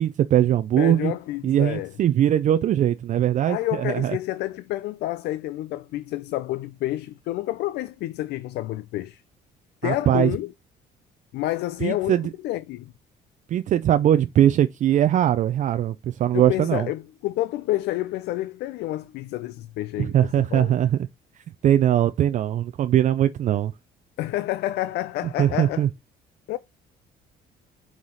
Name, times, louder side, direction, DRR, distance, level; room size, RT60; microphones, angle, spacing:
voice 1, 0.0-1.1 1.4-4.2 9.8-10.3 11.8-12.3 13.5-16.9 20.0-21.0 21.6-23.7 25.4-25.9, right 11 dB, 45° right, 0.4 m, -21 dB
voice 2, 0.8-1.9 3.5-9.2 9.8-10.5 11.3-12.9 16.3-20.7 24.2-25.9 26.5-26.6, left 15 dB, 75° left, 0.4 m, -29 dB
5.6 x 4.7 x 3.9 m
cardioid pair, 110°, 17 cm